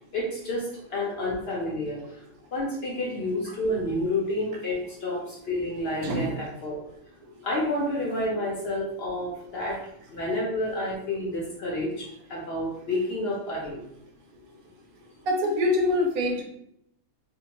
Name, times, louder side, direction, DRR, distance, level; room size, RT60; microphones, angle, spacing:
voice 1, 0.1-0.6 0.9-2.0 2.5-6.3 6.6-6.8 7.4-9.8 10.1-13.8, left 1 dB, 60° left, -3 dB, 0.7 m, -29 dB
voice 2, 6.0-6.4 7.2-7.3 9.7-9.8 14.5-14.6 15.2-16.4, left 1 dB, 85° right, 2 dB, 1.1 m, -26 dB
2.7 x 2.1 x 2.8 m, 0.76 s
omnidirectional pair, 1.5 m